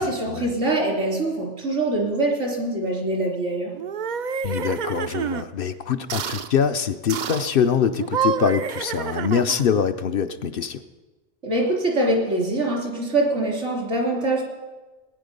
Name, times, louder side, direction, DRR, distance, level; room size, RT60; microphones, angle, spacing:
voice 1, 0.0-3.7 11.4-14.4, right 2 dB, 90° right, -2 dB, 3.6 m, -24 dB
sound 1, 3.8-5.5 6.1-6.5 7.1-7.5 8.0-9.7, right 7 dB, 55° right, 0.5 m, -28 dB
voice 2, 4.4-10.8, left 7 dB, 60° left, 9 dB, 0.8 m, -24 dB
19.0 x 9.4 x 5.2 m, 1.2 s
omnidirectional pair, 1.2 m